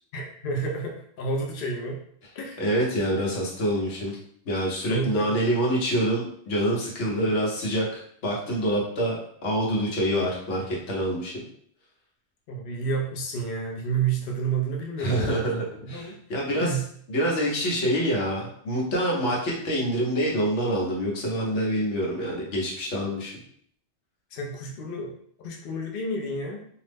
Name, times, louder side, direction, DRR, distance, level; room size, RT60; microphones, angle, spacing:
voice 1, 0.1-2.0 2.3-2.6 4.9-5.3 12.5-15.5 15.8-16.2 16.6-16.8 24.3-26.6, right 3 dB, 60° left, 0 dB, 0.7 m, -30 dB
voice 2, 2.6-4.2 4.5-9.2 9.4-11.3 15.0-16.8 17.1-23.3, equal, 80° left, -3 dB, 1.2 m, -26 dB
2.8 x 2.0 x 3.3 m, 0.63 s
omnidirectional pair, 1.2 m